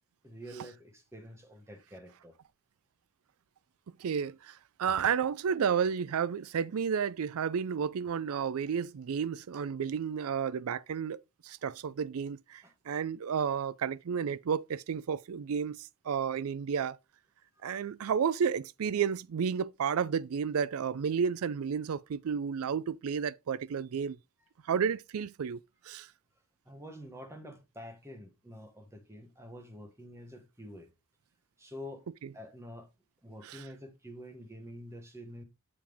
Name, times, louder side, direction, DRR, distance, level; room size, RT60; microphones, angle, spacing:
voice 1, 0.2-2.3 12.6-12.7 26.6-30.9 31.6-32.1 32.3-32.9 33.2-35.4, equal, 10° right, 1.4 m, -47 dB
voice 2, 4.0-17.0 17.6-24.2 24.7-25.6 25.8-26.1 32.2-32.3 33.4-33.6, right 7 dB, 70° right, 0.4 m, -32 dB
7.4 x 4.8 x 3.4 m
head